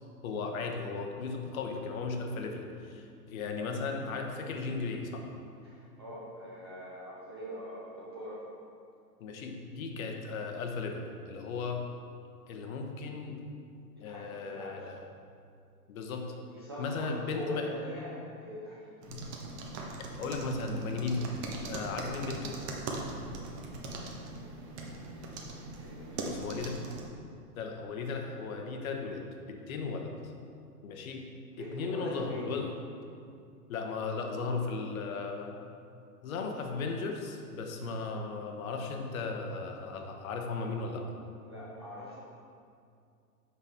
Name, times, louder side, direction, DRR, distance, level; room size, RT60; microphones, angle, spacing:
voice 1, 0.2-5.3 9.2-11.8 12.5-13.4 14.0-15.0 15.9-16.3 16.8-17.6 19.1-19.2 20.2-21.3 21.6-22.6 26.2-26.8 27.6-30.3 30.8-31.3 31.6-32.7 33.7-35.5 36.2-41.1, left 4 dB, 60° left, 3 dB, 1.0 m, -36 dB
voice 2, 5.6-8.5 14.0-15.0 16.5-19.1 23.7-25.2 25.7-26.4 31.5-32.6 41.4-42.2, equal, 20° right, -8 dB, 0.3 m, -43 dB
sound 1, 19.0-27.1, right 2 dB, 45° right, 1.1 m, -40 dB
7.0 x 5.7 x 3.6 m, 2.4 s
hypercardioid pair, 130°, 48 cm